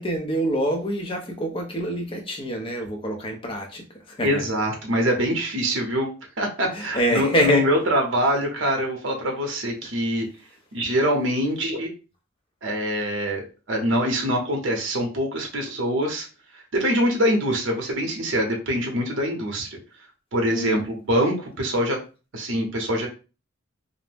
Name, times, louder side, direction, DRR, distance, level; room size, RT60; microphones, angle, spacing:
voice 1, 0.0-4.4 6.7-7.7 20.5-20.8, right 1 dB, 25° left, 2 dB, 0.5 m, -26 dB
voice 2, 4.2-6.1 6.4-10.3 10.7-11.9 12.6-16.3 16.7-19.8 20.3-22.0 22.3-23.1, equal, 60° right, 2 dB, 0.7 m, -24 dB
2.5 x 2.0 x 3.3 m, 0.33 s
head